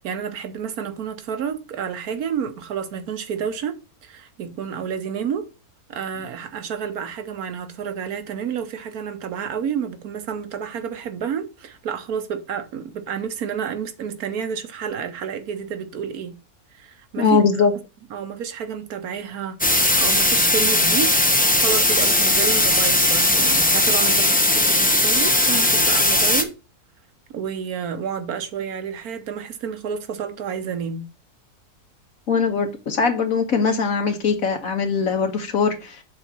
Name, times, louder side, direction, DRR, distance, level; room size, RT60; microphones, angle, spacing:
voice 1, 0.0-5.4 5.9-16.4 16.7-17.4 18.1-21.1 21.6-26.5 27.3-31.1, right 7 dB, 70° right, 1.4 m, -30 dB
voice 2, 17.2-17.7 32.3-36.0, left 5 dB, 60° left, 1.6 m, -21 dB
sound 1, 19.6-26.4, left 1 dB, 10° left, 0.5 m, -18 dB
6.9 x 4.1 x 6.0 m
omnidirectional pair, 1.6 m